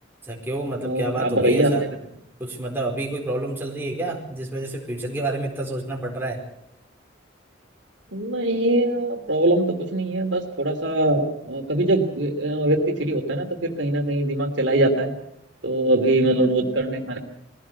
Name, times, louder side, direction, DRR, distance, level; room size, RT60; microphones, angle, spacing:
voice 1, 0.2-1.8 2.4-6.4, right 2 dB, 10° right, -1 dB, 4.5 m, -28 dB
voice 2, 0.8-1.9 8.1-15.1 15.6-17.2, right 1 dB, 70° right, 3 dB, 3.0 m, -22 dB
21.5 x 17.0 x 8.3 m, 0.77 s
head